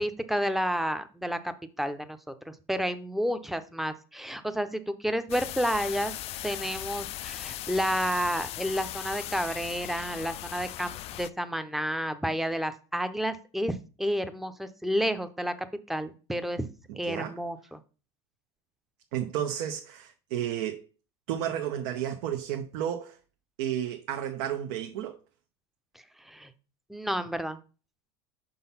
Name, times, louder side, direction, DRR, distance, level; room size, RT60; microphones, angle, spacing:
voice 1, 0.0-6.1 6.4-15.5 15.9-16.7 16.9-17.8 26.2-26.5 26.9-27.6, equal, ahead, 0.7 m, -30 dB
sound 1, 5.3-11.3, left 14 dB, 40° left, 0.4 m, -38 dB
voice 2, 16.9-17.4 19.1-20.9 21.3-23.2 23.6-25.2, right 10 dB, 70° right, 0.9 m, -32 dB
5.9 x 3.9 x 5.6 m
supercardioid pair, 110°, 15 cm